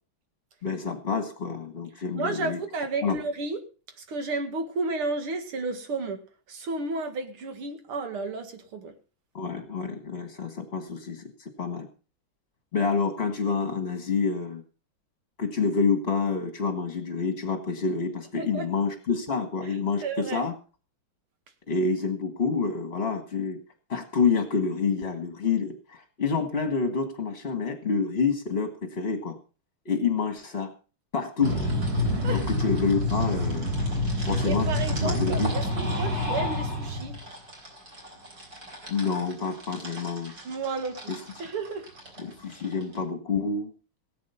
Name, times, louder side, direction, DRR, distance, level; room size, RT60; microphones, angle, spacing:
voice 1, 0.6-2.6 3.0-3.2 9.3-11.9 12.7-14.6 15.4-20.5 21.7-23.6 23.9-29.4 29.8-30.7 31.1-31.6 32.3-33.7 34.2-35.5 38.9-40.3 41.1-41.2 42.2-43.7, left 5 dB, 30° left, 1.7 m, -28 dB
voice 2, 2.1-3.6 4.1-6.2 6.5-8.9 18.3-18.7 20.0-20.5 32.2-32.4 34.4-37.2 40.4-41.1 41.4-41.9, right 3 dB, 80° right, 2.7 m, -32 dB
sound 1, 31.4-43.0, left 1 dB, 45° right, 4.2 m, -29 dB
18.0 x 8.4 x 5.6 m
omnidirectional pair, 2.4 m